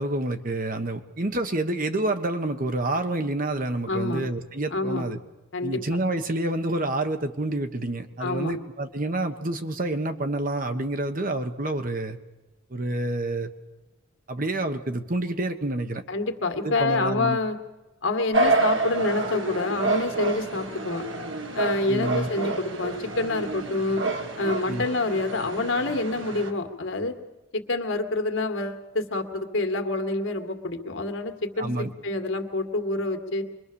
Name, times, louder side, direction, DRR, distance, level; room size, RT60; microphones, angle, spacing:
voice 1, 0.0-5.2 5.6-12.2 12.7-13.5 14.3-16.0 16.6-17.4 21.9-22.3 24.7-24.9 31.6-31.9, right 2 dB, 40° right, 7 dB, 1.3 m, -28 dB
voice 2, 3.9-4.3 4.7-5.1 5.5-6.0 8.2-8.6 16.1-17.6 18.0-21.1 21.5-24.0 24.4-27.1 27.5-33.5, left 2 dB, 65° left, 6 dB, 2.1 m, -27 dB
sound 1, 18.3-26.5, right 2 dB, 65° right, 2.1 m, -28 dB
25.0 x 22.5 x 7.1 m, 1.1 s
head